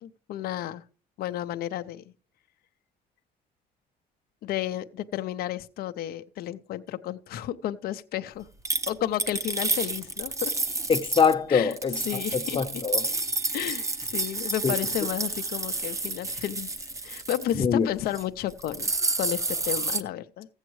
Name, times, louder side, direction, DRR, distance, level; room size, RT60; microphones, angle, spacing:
voice 1, 0.0-0.8 1.2-2.0 4.4-8.5 8.9-10.5 11.5-11.8 12.1-12.6 13.5-18.9 19.2-20.5, left 12 dB, 65° left, 0.6 m, -32 dB
sound 1, 8.6-11.3 11.7-17.5 18.0-18.2 18.5-20.0, right 2 dB, 20° right, 0.7 m, -30 dB
voice 2, 10.9-12.2 12.5-13.1 14.6-14.7 17.6-17.9, left 6 dB, 30° left, 0.8 m, -23 dB
15.0 x 8.1 x 3.1 m
cardioid pair, 110°, 17 cm